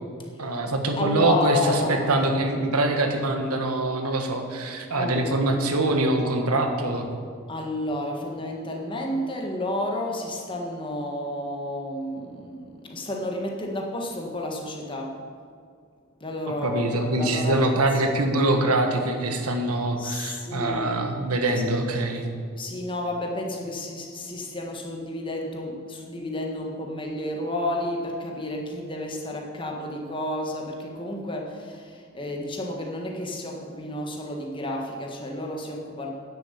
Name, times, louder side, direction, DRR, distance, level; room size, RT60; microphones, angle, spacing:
voice 1, 0.4-7.1 16.5-22.2, right 2 dB, 85° right, 4 dB, 1.5 m, -24 dB
voice 2, 1.0-2.1 4.9-5.3 7.5-15.2 16.2-17.7 20.0-21.1 22.5-36.1, left 1 dB, 20° left, 0 dB, 1.5 m, -31 dB
10.5 x 7.7 x 8.1 m, 2.2 s
head